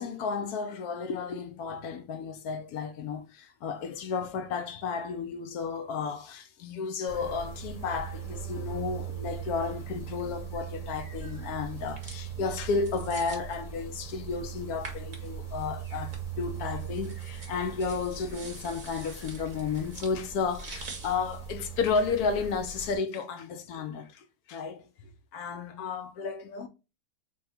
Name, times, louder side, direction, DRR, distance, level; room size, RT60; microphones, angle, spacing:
voice 1, 0.0-24.9 25.3-26.7, left 5 dB, 75° left, 1.0 m, -33 dB
sound 1, 7.1-23.0, right 8 dB, 25° left, 0.9 m, -40 dB
sound 2, 11.7-22.5, right 4 dB, 35° right, 0.9 m, -48 dB
3.4 x 2.2 x 4.2 m
omnidirectional pair, 1.7 m